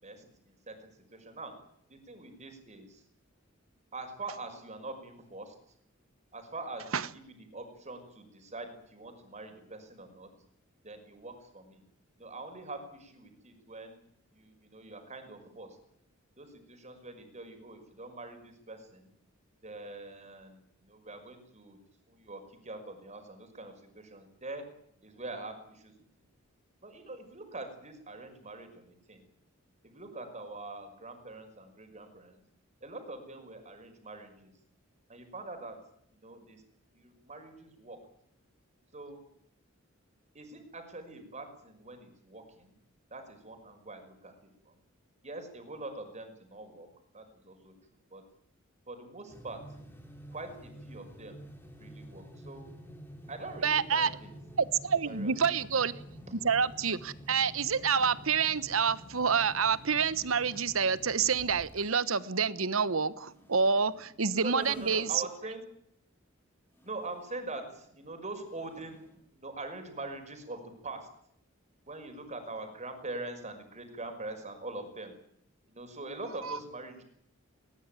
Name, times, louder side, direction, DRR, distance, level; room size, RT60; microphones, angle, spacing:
voice 1, 0.0-1.5 1.9-3.0 3.9-5.5 6.3-10.3 10.8-11.8 12.2-14.0 14.3-15.8 16.4-19.1 19.6-21.8 22.1-24.6 25.0-25.9 26.8-29.2 29.8-32.4 32.8-34.5 35.1-35.8 36.1-36.6 36.9-38.0 38.9-39.2 40.3-42.7 43.1-44.8 45.2-46.9 47.1-47.7 48.1-48.2 48.9-49.8 50.3-51.4 51.8-52.7 53.3-54.3 55.0-55.5 64.4-65.6 66.8-69.0 69.3-71.1 71.9-75.1 75.7-77.0, right 2 dB, 35° right, 5.7 m, -44 dB
sound 1, 49.3-65.4 66.8-69.2, equal, 10° left, 3.9 m, -51 dB
voice 2, 53.6-54.1 54.6-55.9 56.4-65.2 76.4-76.6, right 6 dB, 80° right, 1.2 m, -28 dB
20.5 x 20.0 x 9.2 m
head